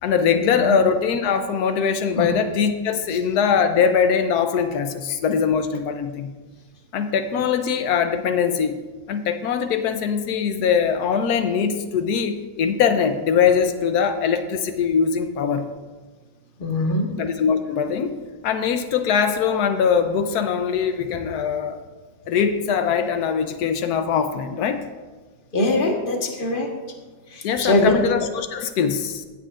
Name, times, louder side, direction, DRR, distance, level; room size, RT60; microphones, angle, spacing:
voice 1, 0.0-6.3 6.9-8.8 9.1-15.7 17.2-18.1 18.4-21.8 22.3-24.8 27.4-29.3, left 7 dB, 90° left, 8 dB, 1.2 m, -22 dB
voice 2, 16.6-17.1 25.5-26.7 27.6-27.9, left 2 dB, 35° left, 1 dB, 1.4 m, -21 dB
16.0 x 8.3 x 2.5 m, 1.3 s
omnidirectional pair, 1.6 m